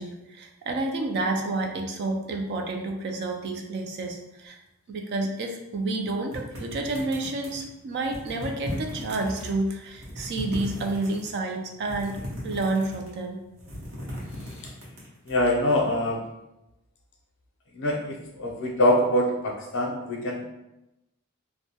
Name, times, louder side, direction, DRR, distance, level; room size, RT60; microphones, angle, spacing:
voice 1, 0.0-4.6 4.9-12.1 12.4-13.4, right 2 dB, 50° right, 3 dB, 0.3 m, -29 dB
sound 1, 6.3-7.7 8.0-9.5 9.9-11.3 11.8-13.2 13.5-15.3, left 1 dB, 65° right, 0.8 m, -37 dB
voice 2, 15.3-16.2 17.7-20.4, left 1 dB, 55° left, 0 dB, 0.5 m, -24 dB
2.2 x 2.1 x 2.7 m, 0.91 s
head